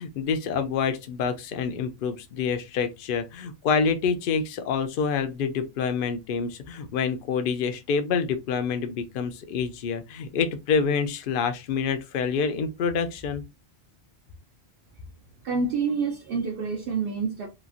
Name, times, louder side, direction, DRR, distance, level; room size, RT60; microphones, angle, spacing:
voice 1, 0.0-13.4, left 6 dB, 60° left, 0.7 m, -27 dB
voice 2, 15.4-17.5, right 5 dB, 65° right, 0.7 m, -27 dB
3.0 x 2.4 x 2.4 m
omnidirectional pair, 1.1 m